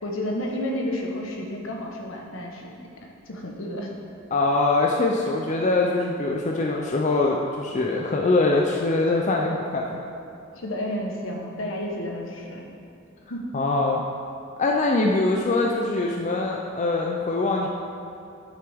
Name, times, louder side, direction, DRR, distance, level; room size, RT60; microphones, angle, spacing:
voice 1, 0.0-2.7 3.3-3.9 10.5-12.7 13.3-13.5, left 1 dB, 65° left, 0 dB, 1.1 m, -31 dB
voice 2, 4.3-10.0 13.5-14.0 14.6-17.7, left 2 dB, 35° left, -1 dB, 0.5 m, -23 dB
9.6 x 6.8 x 3.5 m, 2.6 s
head